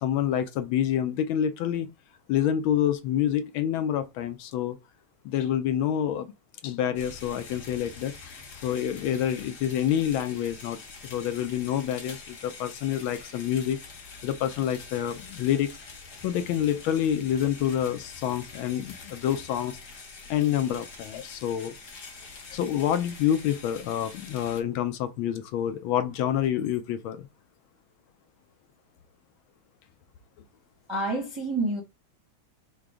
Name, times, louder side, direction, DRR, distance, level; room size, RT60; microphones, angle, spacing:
voice 1, 0.0-1.9 2.3-4.8 5.2-6.3 6.6-8.3 8.6-13.8 14.2-15.7 16.2-19.8 20.3-21.7 22.5-27.3, left 10 dB, 75° left, 1.3 m, -27 dB
sound 1, 7.0-24.6, left 4 dB, 50° left, 1.7 m, -45 dB
voice 2, 30.9-31.8, right 2 dB, 20° right, 0.7 m, -28 dB
4.8 x 2.2 x 4.8 m
omnidirectional pair, 2.4 m